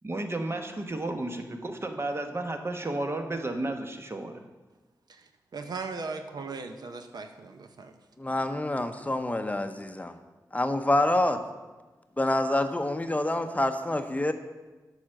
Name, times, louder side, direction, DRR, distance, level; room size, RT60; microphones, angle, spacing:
voice 1, 0.0-4.4, right 2 dB, 35° right, 5 dB, 1.1 m, -32 dB
voice 2, 5.1-7.9, right 4 dB, 65° right, 7 dB, 0.7 m, -38 dB
voice 3, 8.2-10.1 10.5-11.4 12.2-14.3, left 1 dB, 20° left, 8 dB, 0.7 m, -27 dB
8.5 x 5.0 x 6.5 m, 1.2 s
cardioid pair, 45°, 7 cm